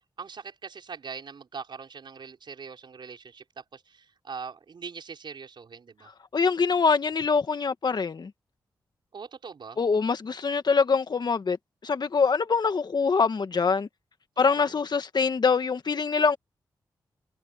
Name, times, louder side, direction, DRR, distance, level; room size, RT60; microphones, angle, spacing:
voice 1, 0.2-6.1 9.1-9.8, right 5 dB, 65° right, 5.1 m, -41 dB
voice 2, 6.3-8.3 9.8-11.6 11.8-13.9 14.4-16.4, left 5 dB, 60° left, 2.0 m, -24 dB
cardioid pair, 45°, 8 cm